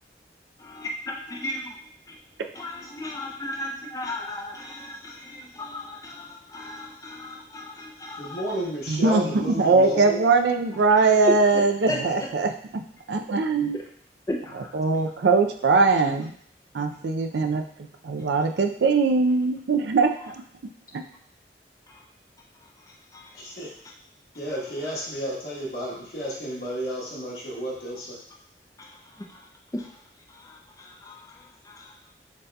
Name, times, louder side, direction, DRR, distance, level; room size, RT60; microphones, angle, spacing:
voice 1, 0.6-1.7 2.1-2.2 2.6-8.4 10.9-11.0 11.2-12.0 14.3-14.7 21.9-22.0 23.1-23.4 28.8-29.9 30.3-31.9, left 1 dB, 20° left, 0 dB, 0.4 m, -35 dB
voice 2, 8.2-10.2 23.4-23.7 24.3-28.2, equal, 60° left, -5 dB, 1.1 m, -31 dB
voice 3, 8.9-12.8 13.1-13.8 14.7-16.3 16.7-17.6 18.0-20.3, right 4 dB, 80° right, 5 dB, 0.4 m, -21 dB
7.2 x 2.7 x 2.2 m, 0.62 s
head